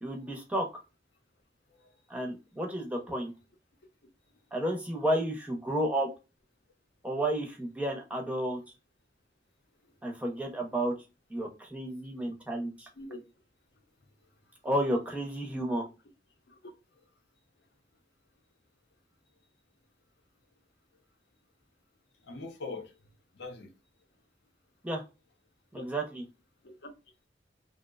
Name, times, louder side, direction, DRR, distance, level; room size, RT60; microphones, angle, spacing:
voice 1, 0.0-0.8 2.1-3.3 4.5-6.1 7.0-8.6 10.0-10.9 11.3-12.9 14.6-15.8 24.8-25.0 25.7-26.2, right 1 dB, 10° right, 0.5 m, -31 dB
voice 2, 22.2-22.9 23.3-23.7 25.8-25.9 26.6-26.9, left 3 dB, 80° left, 0.6 m, -42 dB
2.8 x 2.1 x 2.2 m
head